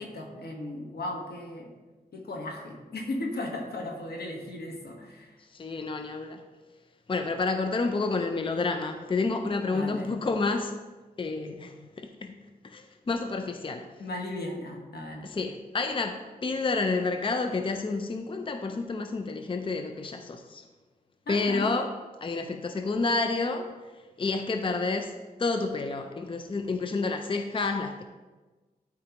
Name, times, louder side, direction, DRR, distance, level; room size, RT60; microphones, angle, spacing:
voice 1, 0.0-1.7 2.1-5.4 9.7-10.1 14.0-15.3 21.3-21.7, left 1 dB, 80° left, 1 dB, 1.3 m, -36 dB
voice 2, 5.5-6.4 7.1-10.8 11.2-12.3 12.6-13.9 15.2-20.6 21.3-21.9 22.2-23.7 24.2-25.1 25.4-28.0, left 3 dB, 35° left, 6 dB, 0.5 m, -29 dB
12.0 x 4.7 x 3.0 m, 1.2 s
wide cardioid pair, 80°, 16 cm